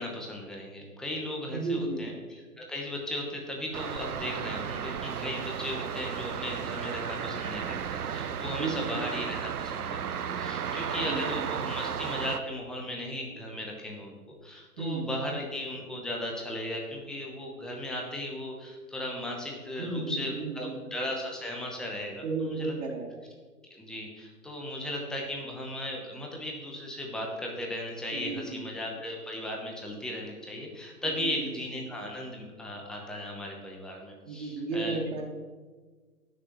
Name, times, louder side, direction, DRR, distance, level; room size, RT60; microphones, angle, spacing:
voice 1, 0.0-14.1 14.4-23.0 23.7-35.0, left 1 dB, ahead, 0 dB, 0.8 m, -36 dB
voice 2, 1.5-2.1 8.5-9.1 10.9-11.3 14.8-15.1 19.8-20.9 22.2-23.2 28.1-28.6 31.0-31.5 34.3-35.2, right 3 dB, 50° right, -5 dB, 2.4 m, -34 dB
sound 1, 3.7-12.4, right 8 dB, 70° right, 0.8 m, -34 dB
18.0 x 6.5 x 3.0 m, 1.4 s
figure-of-eight pair, 130°, 46 cm